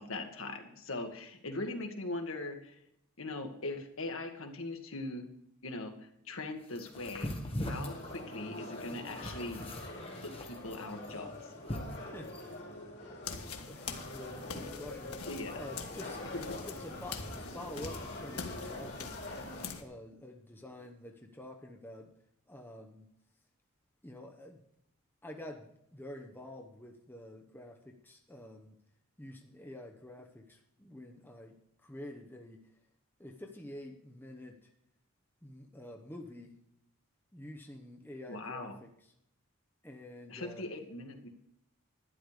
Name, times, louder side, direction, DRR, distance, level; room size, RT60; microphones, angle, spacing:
voice 1, 0.0-2.8 3.2-5.2 5.6-7.3 7.7-9.6 10.4-11.3 15.3-15.6 16.3-16.4 38.3-38.8 40.3-41.3, left 2 dB, 65° left, 4 dB, 1.9 m, -40 dB
sound 1, 6.7-12.5, left 1 dB, 25° left, 1.7 m, -41 dB
sound 2, 7.8-19.7, left 1 dB, 50° left, 4.5 m, -45 dB
voice 2, 12.1-12.6 13.0-13.1 13.7-15.3 15.5-19.1 19.7-22.1 22.5-23.1 24.0-24.6 25.2-28.7 29.2-31.6 31.8-32.6 33.2-34.7 35.4-36.6 37.3-38.9 39.8-40.6, left 1 dB, 10° left, 2 dB, 1.0 m, -48 dB
sound 3, 13.2-19.8, left 5 dB, 85° left, 1.5 m, -44 dB
12.0 x 10.0 x 5.0 m, 0.74 s
head